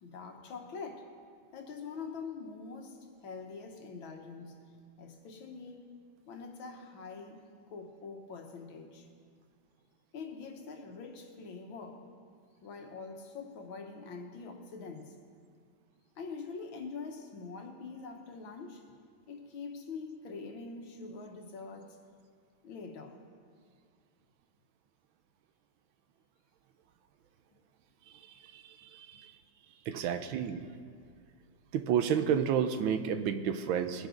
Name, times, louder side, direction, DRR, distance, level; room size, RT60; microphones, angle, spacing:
voice 1, 0.0-1.1 1.5-5.9 6.3-9.1 10.1-12.1 12.6-15.2 16.2-18.8 19.3-22.0 22.6-23.2 30.0-30.1, left 4 dB, 85° left, 4 dB, 2.0 m, -44 dB
voice 2, 28.5-29.3 29.9-30.7 31.7-34.1, right 8 dB, 85° right, 10 dB, 1.5 m, -31 dB
21.0 x 10.0 x 3.9 m, 2.1 s
omnidirectional pair, 2.1 m